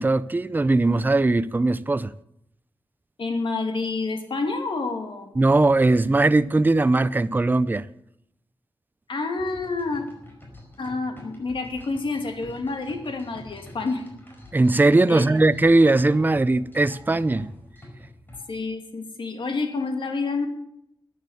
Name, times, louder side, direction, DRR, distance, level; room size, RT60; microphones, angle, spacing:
voice 1, 0.0-2.1 5.4-7.9 14.5-17.5, right 2 dB, 20° right, 0.5 m, -19 dB
voice 2, 3.2-5.3 9.1-10.0 10.8-14.1 15.1-15.2 18.5-20.5, left 3 dB, 65° left, 2.5 m, -28 dB
sound 1, 9.4-18.4, left 1 dB, 20° left, 4.8 m, -46 dB
14.0 x 9.8 x 7.9 m
wide cardioid pair, 140°, 9 cm